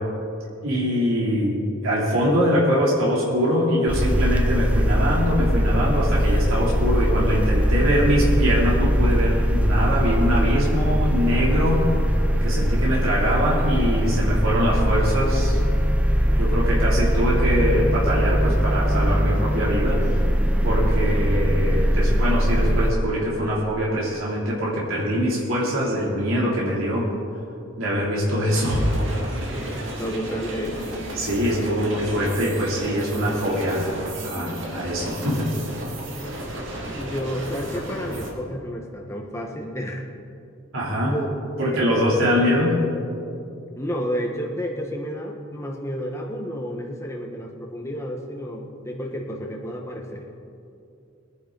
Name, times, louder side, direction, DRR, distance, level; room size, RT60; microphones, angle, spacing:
voice 1, 0.6-11.9 12.4-15.6 16.4-20.3 20.6-27.1 27.8-28.8 31.2-33.9 34.2-35.5 40.7-41.1 41.6-42.8, equal, 85° right, -6 dB, 3.3 m, -23 dB
sound 1, 3.9-22.9, equal, 5° right, 0.7 m, -21 dB
sound 2, 28.5-38.3, right 1 dB, 65° right, 2.3 m, -34 dB
voice 2, 30.0-30.9 36.9-40.1 41.1-42.0 43.8-50.2, equal, 15° left, 0 dB, 1.3 m, -31 dB
sound 3, 30.3-35.8, left 2 dB, 30° right, 1.6 m, -41 dB
22.0 x 10.5 x 4.0 m, 2.6 s
head